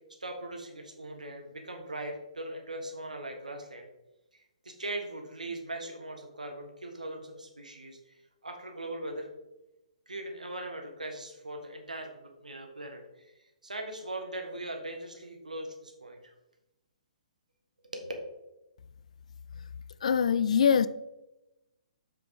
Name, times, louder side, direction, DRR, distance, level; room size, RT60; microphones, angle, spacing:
voice 1, 0.2-3.9 4.3-9.3 10.1-13.3 13.6-16.3 17.8-18.1, right 1 dB, 80° right, 4 dB, 1.3 m, -40 dB
voice 2, 20.0-20.9, left 7 dB, 60° left, 16 dB, 0.4 m, -23 dB
7.6 x 5.8 x 3.7 m, 0.96 s
figure-of-eight pair, 125°, 4 cm